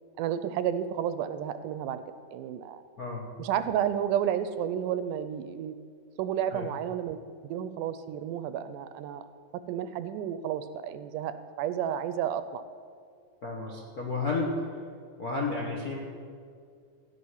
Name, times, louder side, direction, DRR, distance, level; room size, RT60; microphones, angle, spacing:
voice 1, 0.2-2.0 2.3-2.8 3.4-5.7 6.2-9.3 9.7-12.6, right 9 dB, 80° right, 12 dB, 2.1 m, -31 dB
voice 2, 3.0-3.3 6.5-6.7 13.4-14.6 15.2-16.0, left 3 dB, 60° left, -1 dB, 0.9 m, -32 dB
16.0 x 5.9 x 9.6 m, 2.2 s
omnidirectional pair, 3.8 m